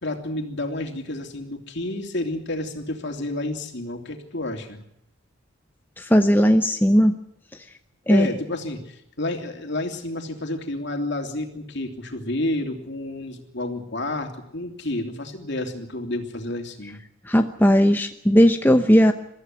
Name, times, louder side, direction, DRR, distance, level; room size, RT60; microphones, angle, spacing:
voice 1, 0.0-4.8 8.1-17.0, left 1 dB, 55° left, 4 dB, 3.1 m, -30 dB
voice 2, 6.0-7.1 8.1-8.3 17.3-19.1, equal, 10° left, 6 dB, 0.9 m, -17 dB
23.5 x 15.0 x 9.6 m, 0.80 s
head